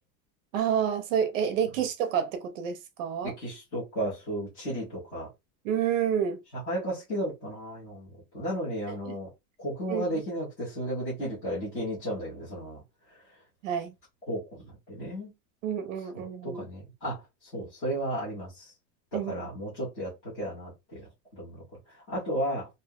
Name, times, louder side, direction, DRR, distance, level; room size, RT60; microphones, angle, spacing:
voice 1, 0.5-3.3 5.6-6.4 8.9-9.2 9.9-10.2 13.6-13.9 15.6-16.7 19.1-19.5, right 8 dB, 50° right, 0.6 m, -29 dB
voice 2, 3.2-5.3 6.7-9.3 9.6-12.8 14.3-15.3 16.1-17.2 17.5-18.6 19.1-21.0 21.3-21.6 22.1-22.7, equal, 10° left, 0.3 m, -34 dB
2.6 x 2.0 x 3.5 m
supercardioid pair, 170°, 50 cm